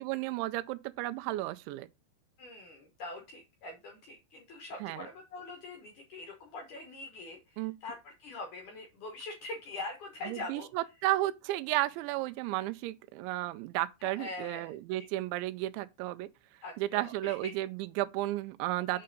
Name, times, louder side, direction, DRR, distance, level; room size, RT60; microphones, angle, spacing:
voice 1, 0.0-1.9 4.8-5.1 7.6-7.7 10.3-16.3 16.8-19.0, right 16 dB, 90° right, 2.9 m, -33 dB
voice 2, 2.4-10.7 14.0-14.8 16.6-17.5 18.9-19.0, left 2 dB, 75° left, 1.9 m, -43 dB
6.7 x 5.5 x 3.8 m
omnidirectional pair, 5.2 m